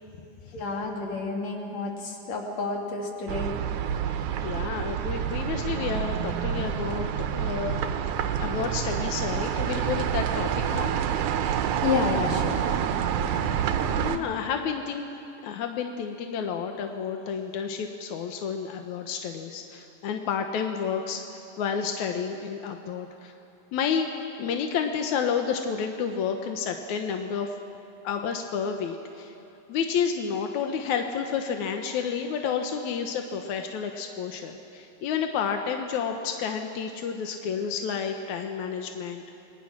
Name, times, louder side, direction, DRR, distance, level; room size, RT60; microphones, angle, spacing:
voice 1, 0.5-3.6 11.8-12.6, left 4 dB, 45° left, 0 dB, 3.5 m, -29 dB
sound 1, 3.3-14.2, right 9 dB, 75° right, 1.9 m, -28 dB
voice 2, 4.1-7.8 8.4-11.0 13.2-15.1 15.4-23.3 23.7-24.1 24.4-27.5 28.0-29.3 29.7-39.2, left 6 dB, 70° left, 4 dB, 1.8 m, -30 dB
28.5 x 21.5 x 6.1 m, 2.7 s
omnidirectional pair, 4.6 m